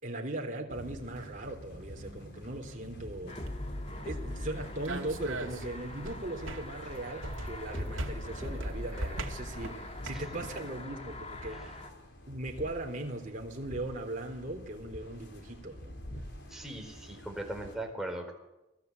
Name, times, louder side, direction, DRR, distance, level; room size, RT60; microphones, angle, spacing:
voice 1, 0.0-3.4 4.0-11.8 12.3-15.9, right 1 dB, 40° right, 3.4 m, -39 dB
sound 1, 0.7-17.8, equal, 60° left, 4.5 m, -48 dB
sound 2, 3.3-11.9, left 1 dB, 30° left, 2.5 m, -42 dB
sound 3, 3.4-10.6, right 2 dB, 75° right, 2.3 m, -41 dB
voice 2, 16.5-18.3, right 1 dB, ahead, 4.3 m, -39 dB
27.5 x 18.5 x 8.3 m
head